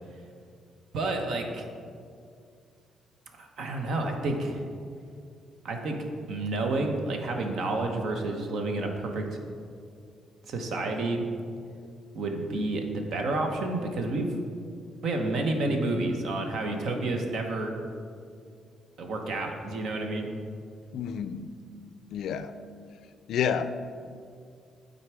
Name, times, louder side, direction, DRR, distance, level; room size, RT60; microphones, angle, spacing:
voice 1, 0.9-1.6 3.3-4.6 5.6-6.0 6.3-9.4 10.5-11.3 12.1-14.3 15.0-17.7 19.0-20.3, right 2 dB, 70° right, 3 dB, 0.9 m, -30 dB
voice 2, 20.9-21.5 22.1-22.5 23.3-23.8, left 8 dB, 75° left, 12 dB, 0.3 m, -29 dB
8.9 x 4.0 x 4.7 m, 2.3 s
cardioid pair, 90°, 0 cm